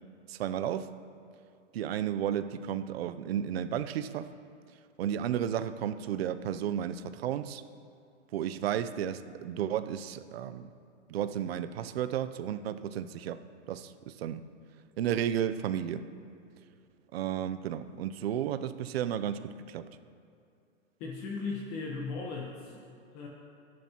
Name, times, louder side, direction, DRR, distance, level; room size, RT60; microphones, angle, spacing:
voice 1, 0.3-0.9 1.7-4.3 5.0-7.6 8.3-10.7 11.1-13.4 13.7-14.4 15.0-16.1 17.1-19.4 19.7-19.9, right 10 dB, 55° right, 11 dB, 0.6 m, -33 dB
voice 2, 21.0-23.3, left 4 dB, 25° left, -1 dB, 1.0 m, -37 dB
20.5 x 10.5 x 2.9 m, 2.5 s
hypercardioid pair, 160°, 38 cm